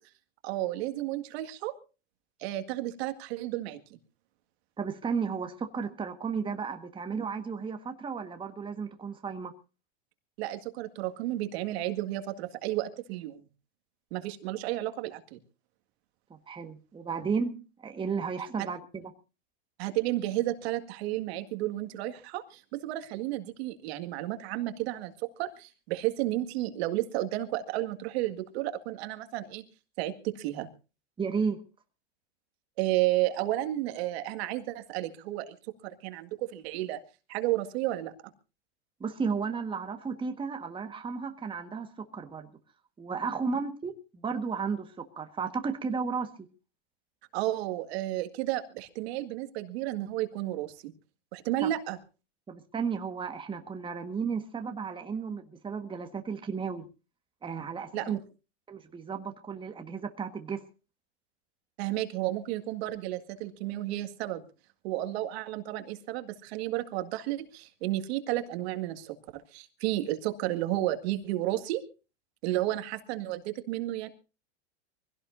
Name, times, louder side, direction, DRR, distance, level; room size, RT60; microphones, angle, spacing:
voice 1, 0.4-1.7 2.4-3.8 10.4-13.5 14.1-15.4 18.6-18.7 19.8-25.1 25.4-29.6 30.0-30.7 32.8-35.6 35.8-37.0 37.3-38.1 47.3-50.9 51.3-52.0 57.9-58.2 61.8-64.4 64.8-69.1 69.5-71.8 72.4-74.1, right 15 dB, 60° right, 2.0 m, -32 dB
voice 2, 4.8-9.5 16.3-19.1 31.2-31.6 39.0-42.5 43.0-46.3 51.6-51.7 52.5-56.9 57.4-58.2 58.7-60.6, right 5 dB, 15° right, 1.5 m, -34 dB
24.0 x 16.5 x 2.6 m
hypercardioid pair, 120°, 35 cm